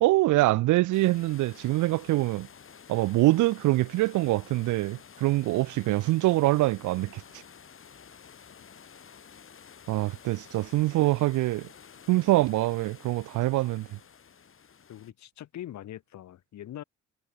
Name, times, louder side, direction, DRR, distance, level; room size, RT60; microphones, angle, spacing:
voice 1, 0.0-2.5 2.9-7.2 9.9-11.7 12.1-13.9, right 18 dB, 75° right, 0.5 m, -24 dB
sound 1, 0.9-15.1, left 7 dB, 45° left, 3.4 m, -51 dB
voice 2, 14.9-16.8, left 12 dB, 65° left, 1.5 m, -42 dB
cardioid pair, 90°, 30 cm